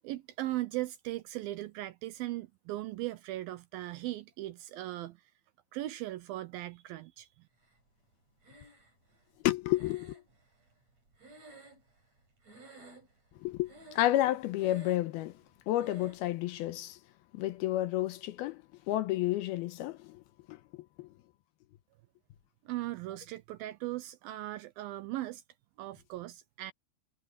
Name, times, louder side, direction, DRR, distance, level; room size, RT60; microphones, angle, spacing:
voice 1, 0.0-5.2 5.7-7.3 22.7-25.4 25.8-26.7, right 16 dB, 80° right, 2.2 m, -38 dB
Breathing, 8.4-9.2 9.7-12.2 12.4-13.3 13.6-14.2 14.5-15.2 15.8-16.3, right 1 dB, 40° right, 8.7 m, -53 dB
voice 2, 9.4-10.1 13.4-15.4 15.7-17.0 17.3-20.2 20.5-21.1, left 15 dB, 80° left, 2.6 m, -31 dB
omnidirectional pair, 4.8 m